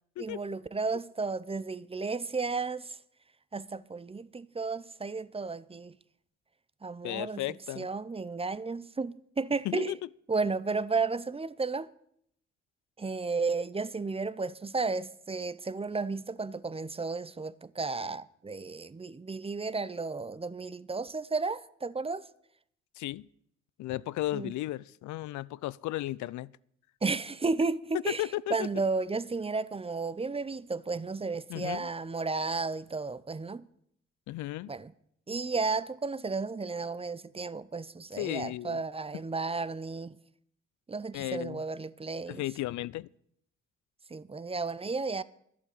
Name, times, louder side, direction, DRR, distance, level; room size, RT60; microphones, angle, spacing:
voice 1, 0.2-3.0 3.5-6.0 6.8-10.0 10.3-11.9 13.0-22.3 24.3-24.5 27.0-33.7 34.7-34.9 35.3-40.2 40.9-42.4 44.1-45.2, right 4 dB, 20° right, 0.6 m, -33 dB
voice 2, 7.0-7.9 9.6-10.0 23.0-23.3 23.8-26.5 28.2-28.7 31.5-31.9 34.3-34.7 38.2-38.8 41.1-41.6 42.3-43.1, left 16 dB, 80° left, 0.5 m, -35 dB
11.0 x 8.4 x 8.7 m
cardioid pair, 70°, 29 cm